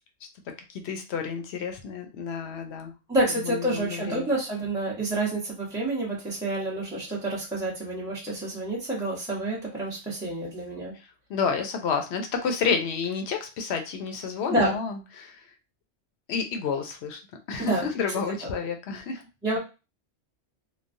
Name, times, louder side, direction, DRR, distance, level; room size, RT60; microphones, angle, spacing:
voice 1, 0.7-2.9 3.4-4.3 11.3-15.4 16.3-17.2 17.5-19.2, left 5 dB, 70° left, 5 dB, 0.8 m, -30 dB
voice 2, 3.1-10.9 14.5-14.7 17.6-17.9 19.4-19.6, right 1 dB, 5° right, -7 dB, 0.6 m, -28 dB
3.1 x 2.0 x 2.6 m, 0.29 s
omnidirectional pair, 1.2 m